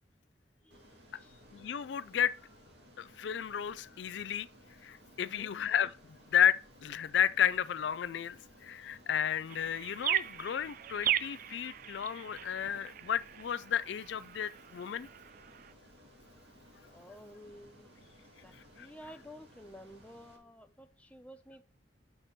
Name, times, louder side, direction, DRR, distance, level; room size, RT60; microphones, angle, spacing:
voice 1, 0.6-1.0 5.2-5.5 16.9-17.9 18.4-21.6, equal, 5° left, 0.6 m, -52 dB
Ocean, 0.7-20.4, equal, 65° right, 1.9 m, -59 dB
voice 2, 1.5-2.4 3.0-4.5 4.8-6.0 6.3-15.1 18.8-18.9, left 9 dB, 75° left, 0.4 m, -32 dB
sound 1, 9.5-15.7, right 11 dB, 50° right, 0.4 m, -38 dB
6.6 x 4.4 x 5.9 m
head